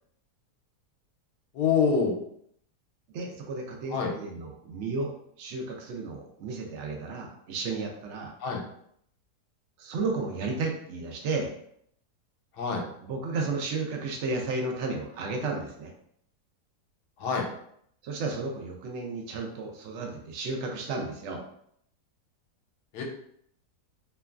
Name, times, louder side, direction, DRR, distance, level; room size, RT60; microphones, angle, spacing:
voice 1, 1.5-2.2 3.9-4.1 8.4-8.6 12.6-12.8 17.2-17.4 22.9-23.0, left 5 dB, 85° left, 1 dB, 1.2 m, -25 dB
voice 2, 3.1-8.3 9.8-11.5 13.0-15.9 18.0-21.4, right 3 dB, 80° right, 1 dB, 0.6 m, -33 dB
2.9 x 2.3 x 2.3 m, 0.69 s
omnidirectional pair, 1.7 m